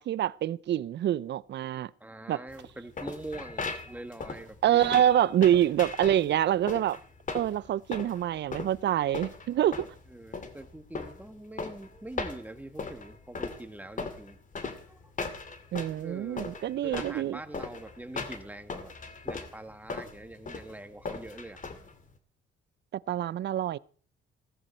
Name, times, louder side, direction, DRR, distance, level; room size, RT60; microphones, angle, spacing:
voice 1, 0.0-1.9 2.3-2.4 4.6-7.0 7.3-9.9 15.7-17.4 22.9-23.8, right 11 dB, 60° right, 0.6 m, -26 dB
voice 2, 2.0-5.0 10.1-15.0 15.4-15.6 16.0-21.6, right 1 dB, 10° right, 1.6 m, -44 dB
sound 1, 2.5-22.1, left 4 dB, 40° left, 2.4 m, -38 dB
16.0 x 13.5 x 4.4 m
cardioid pair, 90°, 20 cm